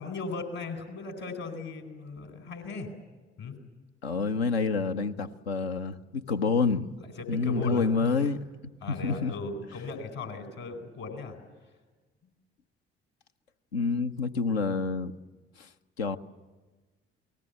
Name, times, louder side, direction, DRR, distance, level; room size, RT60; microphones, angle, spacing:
voice 1, 0.0-2.9 3.4-3.5 7.0-8.3 8.8-11.7 12.2-12.3, left 3 dB, 60° left, 4.6 m, -38 dB
voice 2, 4.0-6.9 7.3-8.4 9.0-9.3 13.7-15.1 15.6-15.7 16.0-16.2, left 4 dB, 80° left, 0.8 m, -28 dB
28.5 x 19.0 x 8.3 m
figure-of-eight pair, 45°, 31 cm